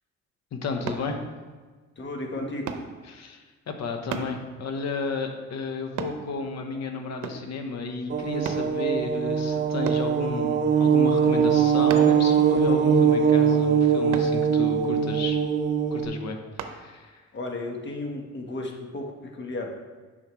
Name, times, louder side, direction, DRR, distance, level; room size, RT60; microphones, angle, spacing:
voice 1, 0.5-1.2 3.1-15.4 15.9-17.2, left 4 dB, 60° left, 5 dB, 1.0 m, -33 dB
sound 1, 0.9-1.1 2.7-2.9 4.1-4.4 6.0-6.2 7.2-7.5 8.5-8.7 9.9-10.1 11.9-12.2 14.1-14.4 16.6-16.8 17.4-17.5, right 7 dB, 80° right, 0.7 m, -33 dB
voice 2, 2.0-2.7 17.3-19.7, left 2 dB, 40° left, 2 dB, 1.3 m, -34 dB
sound 2, 8.1-16.1, right 7 dB, 40° right, 0.7 m, -21 dB
7.9 x 5.7 x 3.1 m, 1.4 s
cardioid pair, 90°, 30 cm